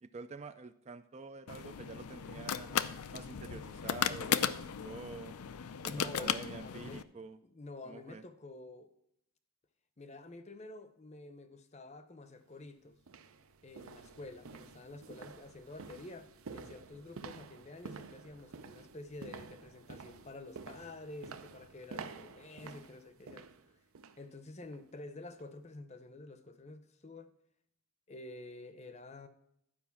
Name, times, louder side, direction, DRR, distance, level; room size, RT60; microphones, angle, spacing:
voice 1, 0.0-2.8 3.1-4.6 4.8-5.3 5.8-7.4 7.8-8.2, right 4 dB, 30° right, 0.3 m, -47 dB
sound 1, 1.5-7.0, left 8 dB, 85° left, 0.5 m, -36 dB
voice 2, 5.6-7.0 7.4-8.9 10.0-13.0 13.6-23.5 24.2-27.3 28.1-29.3, left 2 dB, 30° left, 0.7 m, -49 dB
sound 2, 12.3-12.4 13.0-24.3 24.6-24.9 25.3-25.4, right 5 dB, 75° right, 0.6 m, -50 dB
11.5 x 5.1 x 7.1 m
head